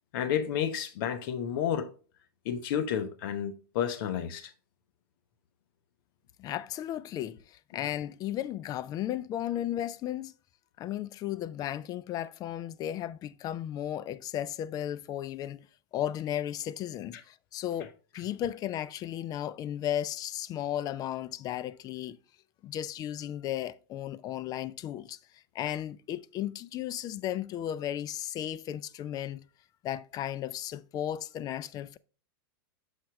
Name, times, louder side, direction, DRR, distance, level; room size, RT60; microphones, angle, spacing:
voice 1, 0.1-1.9 2.4-4.5, left 9 dB, 60° left, 0.9 m, -31 dB
voice 2, 6.4-10.3 10.8-15.6 15.9-22.2 22.6-25.2 25.5-29.4 29.8-32.0, left 11 dB, 30° left, 0.4 m, -35 dB
6.4 x 5.7 x 3.0 m
hypercardioid pair, 120°, 13 cm